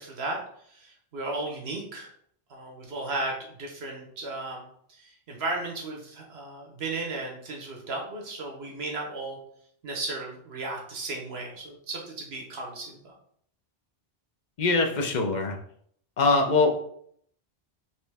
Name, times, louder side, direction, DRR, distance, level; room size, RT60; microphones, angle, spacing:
voice 1, 0.0-2.1 2.5-4.6 4.9-9.4 9.8-13.1, right 2 dB, 75° right, 0 dB, 1.2 m, -35 dB
voice 2, 14.6-15.6 16.2-16.7, left 3 dB, 50° left, 2 dB, 0.7 m, -22 dB
4.3 x 3.1 x 3.4 m, 0.65 s
omnidirectional pair, 1.1 m